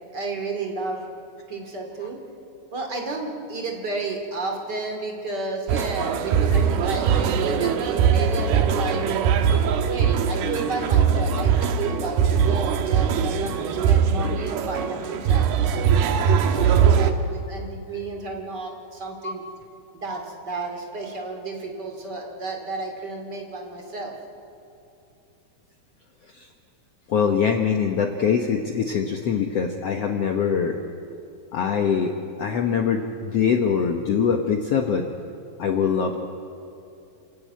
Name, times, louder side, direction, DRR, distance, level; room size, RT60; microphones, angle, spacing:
voice 1, 0.1-1.1 1.5-2.2 2.7-9.0 9.6-19.4 19.9-24.1, right 3 dB, 30° right, 2 dB, 2.4 m, -32 dB
sound 1, 5.7-17.1, right 7 dB, 90° right, 3.0 m, -21 dB
voice 2, 27.1-30.8 31.5-32.1 32.4-35.1 35.6-36.2, left 6 dB, 85° left, 4 dB, 1.3 m, -23 dB
27.5 x 15.0 x 9.3 m, 2.8 s
omnidirectional pair, 4.4 m